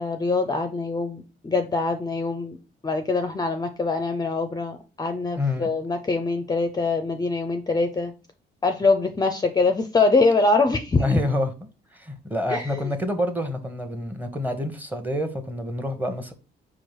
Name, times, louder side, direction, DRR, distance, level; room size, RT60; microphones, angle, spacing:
voice 1, 0.0-2.6 2.8-8.1 8.6-11.1 12.5-12.9, left 3 dB, 20° left, 0.5 m, -24 dB
voice 2, 5.4-5.7 11.0-16.3, left 1 dB, 10° right, 0.9 m, -27 dB
4.5 x 2.5 x 4.6 m
cardioid pair, 90°, 20 cm